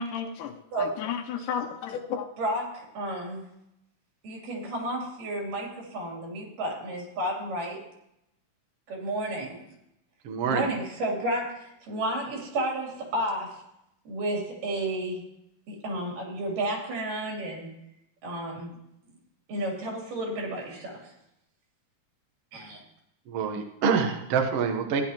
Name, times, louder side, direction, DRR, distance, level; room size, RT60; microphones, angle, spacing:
voice 1, 0.0-2.3, left 7 dB, 85° left, 4 dB, 2.3 m, -33 dB
voice 2, 3.0-3.4 4.2-7.8 8.9-9.6 10.5-13.5 14.1-15.2 15.7-17.7 18.2-18.7 19.5-20.9 22.5-22.8, right 1 dB, 90° right, -1 dB, 4.6 m, -31 dB
voice 3, 10.2-10.7 23.3-25.0, right 6 dB, 60° right, 5 dB, 1.7 m, -26 dB
15.0 x 10.5 x 2.9 m, 0.83 s
omnidirectional pair, 3.7 m